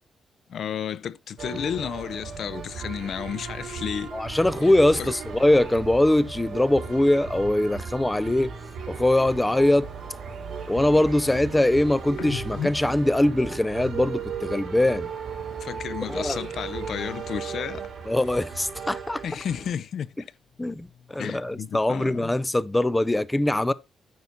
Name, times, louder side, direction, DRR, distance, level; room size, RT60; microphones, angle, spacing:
voice 1, 0.5-4.1 5.0-5.1 15.6-17.9 19.2-20.1 21.2-22.4, left 8 dB, 60° left, 0.5 m, -32 dB
sound 1, 1.4-19.7, right 6 dB, 55° right, 3.5 m, -36 dB
voice 2, 4.1-8.5 8.9-9.9 10.7-15.1 16.1-16.4 18.1-19.2 20.6-23.7, left 1 dB, 10° left, 0.4 m, -22 dB
sound 2, 12.1-15.7 16.0-17.9 18.1-20.0 20.4-22.2, left 8 dB, 85° left, 1.0 m, -43 dB
9.5 x 6.0 x 3.9 m
cardioid pair, 140°, 0 cm